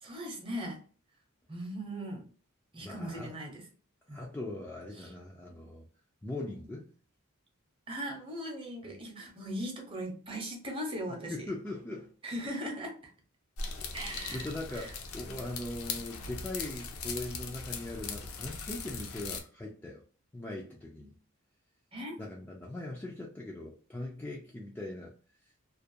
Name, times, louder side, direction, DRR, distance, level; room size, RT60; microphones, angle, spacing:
voice 1, 0.0-0.8 1.5-2.2 2.7-3.6 4.1-4.2 5.0-5.1 7.9-11.5 12.2-13.0 13.9-14.5 14.7-14.9 21.9-22.1, equal, 25° right, 0.7 m, -39 dB
voice 2, 2.8-3.3 4.1-5.8 6.2-6.9 11.3-12.1 13.6-20.0 20.3-21.1 22.2-25.1, left 1 dB, 10° left, 0.3 m, -40 dB
sound 1, 13.6-19.4, left 4 dB, 75° left, 0.5 m, -40 dB
2.4 x 2.1 x 2.6 m
head